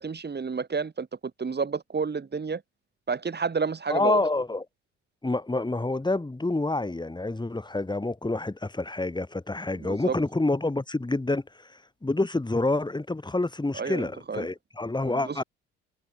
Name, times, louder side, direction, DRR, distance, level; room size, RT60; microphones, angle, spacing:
voice 1, 0.0-2.6 3.1-4.2 9.8-10.2 13.7-14.5 15.1-15.4, right 5 dB, 30° right, 5.6 m, -30 dB
voice 2, 3.9-4.6 5.2-15.4, left 2 dB, 15° left, 5.3 m, -28 dB
hypercardioid pair, 65°, 33 cm